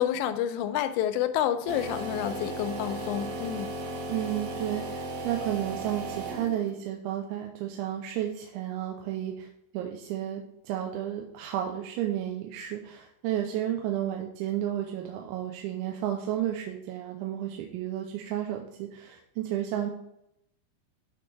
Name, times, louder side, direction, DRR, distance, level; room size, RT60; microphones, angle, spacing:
voice 1, 0.0-3.7, left 10 dB, 85° left, 10 dB, 2.7 m, -29 dB
sound 1, 1.7-6.8, right 2 dB, 65° right, 2.2 m, -36 dB
voice 2, 4.1-9.5 9.7-19.9, right 11 dB, 90° right, 2 dB, 3.0 m, -32 dB
12.5 x 4.3 x 3.3 m, 0.79 s
omnidirectional pair, 5.3 m